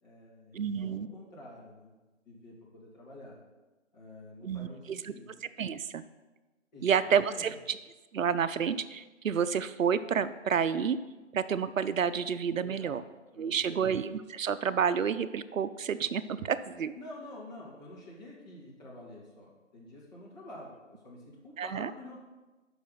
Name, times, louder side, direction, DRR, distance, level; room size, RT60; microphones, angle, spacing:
voice 1, 0.0-1.9 2.2-3.4 3.9-5.3 6.7-7.6 12.6-13.0 13.3-13.9 17.0-22.2, left 1 dB, 35° left, -5 dB, 2.4 m, -48 dB
voice 2, 0.5-1.1 4.4-5.1 5.6-6.0 6.8-7.5 8.1-11.0 11.3-13.0 13.4-16.9 21.6-21.9, right 7 dB, 80° right, 13 dB, 0.6 m, -29 dB
6.0 x 5.6 x 5.7 m, 1.2 s
figure-of-eight pair, 160°, 39 cm